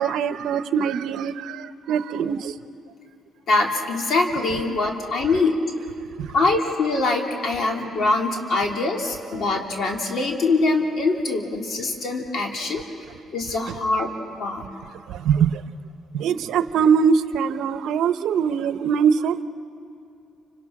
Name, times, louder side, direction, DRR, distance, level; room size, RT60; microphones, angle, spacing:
voice 1, 0.0-2.5 6.2-6.3 13.7-13.8 15.1-15.6 16.1-19.4, right 7 dB, 80° right, 0.8 m, -22 dB
voice 2, 3.5-5.6 6.3-12.8 13.3-14.1 14.4-14.7, left 3 dB, 60° left, 3.2 m, -23 dB
29.5 x 26.5 x 6.0 m
cardioid pair, 90°, 0 cm